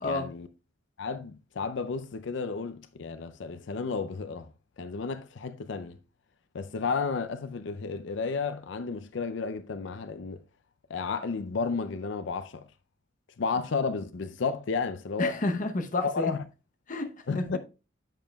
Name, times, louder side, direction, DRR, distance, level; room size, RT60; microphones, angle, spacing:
voice 1, 0.0-0.5 1.0-4.5 4.8-6.0 6.5-10.4 10.9-12.7 13.4-15.4 16.0-16.4 17.3-17.6, left 4 dB, 65° left, 0.5 m, -32 dB
voice 2, 15.2-16.3 16.9-17.6, left 2 dB, 40° left, 0.8 m, -30 dB
8.9 x 7.4 x 2.2 m
head